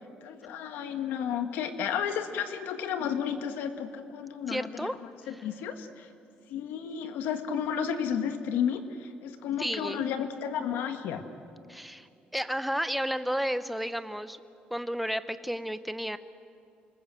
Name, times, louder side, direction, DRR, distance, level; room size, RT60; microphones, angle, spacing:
voice 1, 0.2-6.1 6.5-11.2, left 8 dB, 85° left, 8 dB, 1.8 m, -32 dB
voice 2, 4.5-4.9 5.3-5.4 9.6-10.0 11.7-12.1 12.3-14.4 14.7-16.2, equal, ahead, 12 dB, 0.8 m, -32 dB
28.5 x 20.0 x 7.8 m, 2.5 s
cardioid pair, 135°, 3 cm